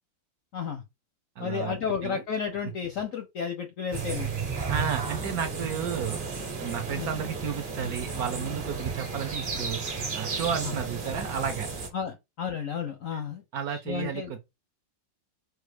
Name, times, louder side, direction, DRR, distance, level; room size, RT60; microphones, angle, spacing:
voice 1, 0.5-0.8 1.4-4.3 6.9-7.1 11.9-13.4 13.7-14.3, left 7 dB, 65° left, 0.8 m, -32 dB
voice 2, 1.4-2.2 4.7-6.3 6.6-9.8 10.1-11.7 13.1-13.2 13.5-14.4, right 7 dB, 65° right, 1.0 m, -32 dB
sound 1, 3.9-11.9, right 4 dB, 35° right, 0.9 m, -33 dB
4.6 x 2.4 x 4.9 m
omnidirectional pair, 2.1 m